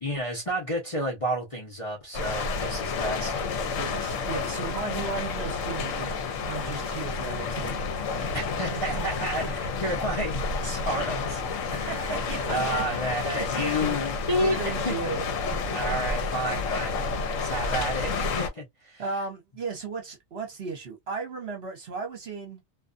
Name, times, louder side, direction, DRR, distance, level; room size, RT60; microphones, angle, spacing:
voice 1, 0.0-3.4 8.3-11.4 11.7-15.0 15.7-17.0 17.3-19.0, equal, 30° left, 0.7 m, -31 dB
sound 1, 2.1-18.5, left 4 dB, 75° left, 1.0 m, -30 dB
voice 2, 3.7-7.9 8.1-8.2 8.7-9.7 11.8-12.8 13.3-13.9 14.4-15.8 19.0-22.6, right 4 dB, 55° right, 1.0 m, -36 dB
2.5 x 2.3 x 2.4 m
omnidirectional pair, 1.4 m